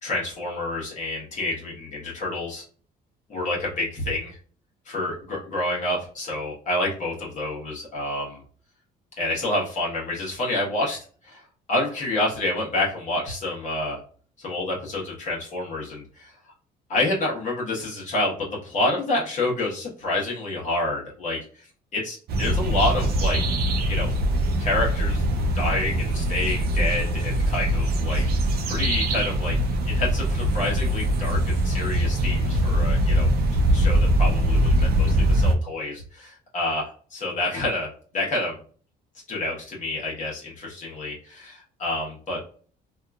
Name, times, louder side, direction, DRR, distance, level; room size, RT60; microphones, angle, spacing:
voice 1, 0.0-2.6 3.3-4.4 4.8-8.4 9.2-11.4 11.7-14.0 14.4-16.3 16.9-21.7 21.9-23.4 23.9-24.1 24.6-25.2 25.5-28.2 28.7-29.6 29.9-33.3 33.7-37.9 38.1-38.6 39.3-42.4, left 2 dB, 45° left, -4 dB, 1.0 m, -28 dB
Birds Sunrise Portete Beach, 22.3-35.5, right 1 dB, 65° right, 0.5 m, -22 dB
2.8 x 2.4 x 2.3 m, 0.43 s
cardioid pair, 110°, 17 cm